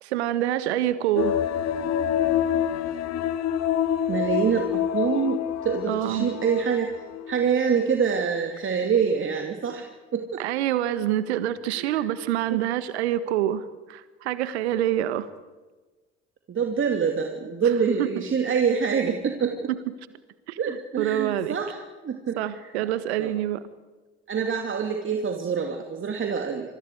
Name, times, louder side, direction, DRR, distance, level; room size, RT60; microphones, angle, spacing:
voice 1, 0.0-1.4 5.9-6.3 10.4-13.6 13.9-15.3 18.0-18.2 19.7-19.8 20.5-21.6 22.4-23.6, right 12 dB, 70° right, 14 dB, 1.6 m, -26 dB
sound 1, 1.2-7.4 7.7-7.8, left 10 dB, 50° left, 1.4 m, -27 dB
voice 2, 4.1-6.9 7.3-9.9 10.1-10.4 11.8-12.1 12.5-12.6 16.5-19.7 20.6-21.8 22.0-22.7 23.2-23.3 24.3-26.8, right 6 dB, 35° right, 3 dB, 2.8 m, -26 dB
28.5 x 27.0 x 4.9 m, 1.2 s
figure-of-eight pair, 55°, 34 cm